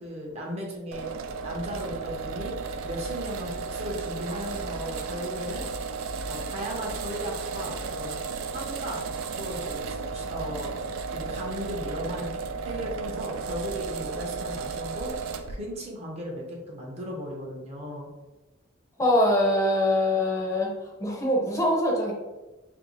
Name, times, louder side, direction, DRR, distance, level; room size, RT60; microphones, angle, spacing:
voice 1, 0.0-1.1 1.4-2.5 2.8-5.6 6.3-8.2 8.5-9.0 9.4-10.8 11.1-15.1 15.5-18.1, equal, 30° right, -1 dB, 0.6 m, -36 dB
sound 1, 0.9-15.6, right 4 dB, 90° right, 0.3 m, -34 dB
voice 2, 19.0-22.1, left 1 dB, 15° left, -3 dB, 0.6 m, -23 dB
2.6 x 2.6 x 2.9 m, 1.1 s
head